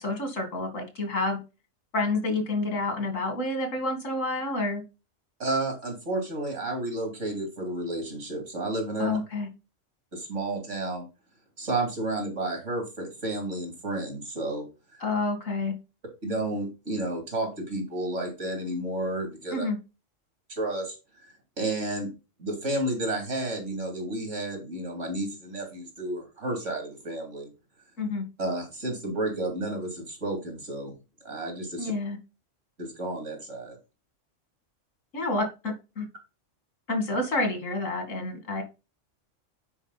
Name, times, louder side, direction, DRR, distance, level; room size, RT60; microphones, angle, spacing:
voice 1, 0.0-1.4 1.9-4.8 9.0-9.5 15.0-15.7 19.5-19.8 28.0-28.2 31.8-32.2 35.1-36.1 36.9-38.6, left 2 dB, 90° left, 5 dB, 2.6 m, -29 dB
voice 2, 5.4-9.2 10.1-11.1 11.6-14.7 16.2-19.7 20.6-21.0 21.6-22.1 22.4-27.5 28.4-31.0 31.2-31.9 32.8-33.8, right 2 dB, 70° right, 3 dB, 3.4 m, -31 dB
9.8 x 4.9 x 4.0 m, 0.28 s
omnidirectional pair, 1.3 m